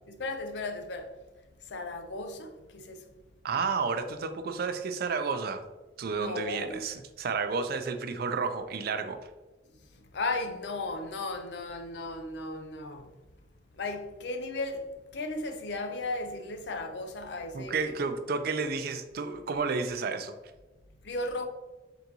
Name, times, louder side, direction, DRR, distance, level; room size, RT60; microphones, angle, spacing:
voice 1, 0.1-1.1 1.6-3.1 6.1-6.8 9.9-13.1 13.7-17.7 21.0-21.5, left 2 dB, 70° left, 0.5 m, -35 dB
voice 2, 3.4-5.6 6.0-9.2 17.5-20.3, right 4 dB, 60° right, 0.4 m, -31 dB
3.9 x 3.5 x 2.8 m
head